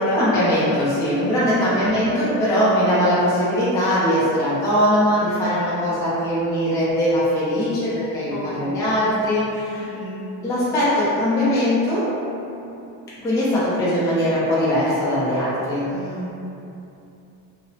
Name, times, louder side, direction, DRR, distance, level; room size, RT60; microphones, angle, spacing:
voice 1, 0.1-9.9 10.4-12.1 13.2-15.9, equal, 10° left, -10 dB, 0.3 m, -21 dB
voice 2, 1.6-2.1 8.3-9.1 9.7-10.2 15.8-16.3, equal, 55° left, -6 dB, 0.8 m, -30 dB
2.8 x 2.0 x 2.7 m, 2.9 s
cardioid pair, 135°, 44 cm